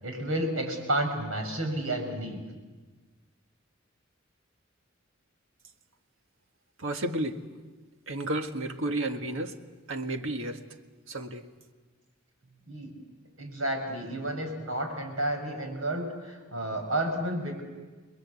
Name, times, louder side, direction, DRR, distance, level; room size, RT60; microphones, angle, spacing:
voice 1, 0.0-2.4 12.7-12.9 13.4-17.6, right 1 dB, 90° right, 6.2 m, -31 dB
voice 2, 6.8-7.4 8.1-9.6 9.9-10.6 11.1-11.5, right 1 dB, 75° right, 1.7 m, -32 dB
30.0 x 21.5 x 8.4 m
head